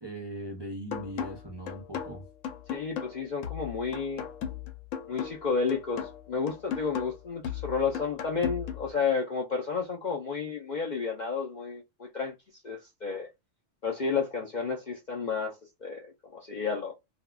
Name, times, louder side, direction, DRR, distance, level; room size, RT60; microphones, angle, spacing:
voice 1, 0.0-2.2, right 1 dB, 35° right, 0.4 m, -39 dB
sound 1, 0.9-8.9, left 8 dB, 85° left, 1.0 m, -37 dB
voice 2, 2.7-4.3 5.1-12.3 12.6-13.3 13.8-16.9, left 5 dB, 55° left, 0.5 m, -31 dB
3.5 x 2.2 x 2.2 m
omnidirectional pair, 1.3 m